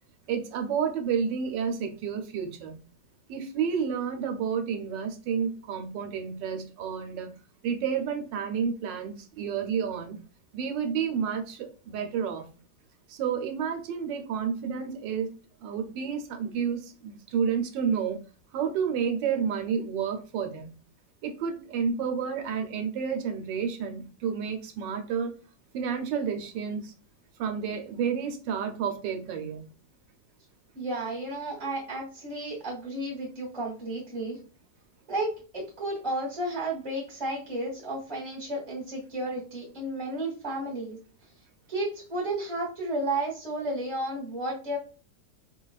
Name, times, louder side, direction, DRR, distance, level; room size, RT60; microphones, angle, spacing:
voice 1, 0.3-2.8 3.3-7.3 7.6-10.2 10.5-12.4 13.1-15.3 15.6-18.2 18.5-20.7 21.2-25.3 25.7-26.9 27.4-29.6, right 7 dB, 85° right, 5 dB, 1.3 m, -30 dB
voice 2, 30.7-34.4 35.1-41.0 41.7-44.8, right 1 dB, 25° right, -5 dB, 1.1 m, -32 dB
4.5 x 2.3 x 2.3 m, 0.38 s
omnidirectional pair, 1.9 m